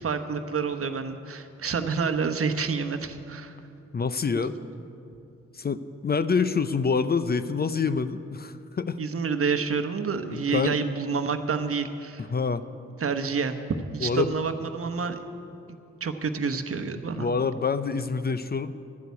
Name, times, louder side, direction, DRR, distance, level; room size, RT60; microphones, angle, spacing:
voice 1, 0.0-3.5 4.3-4.5 9.0-12.3 13.0-13.6 13.9-15.2 16.0-17.3, right 5 dB, 50° right, 8 dB, 1.1 m, -28 dB
voice 2, 3.9-4.5 5.5-9.0 10.3-10.8 12.2-12.6 14.0-14.3 17.2-18.7, left 5 dB, 35° left, 12 dB, 0.6 m, -26 dB
11.5 x 8.0 x 9.5 m, 2.7 s
supercardioid pair, 50°, 29 cm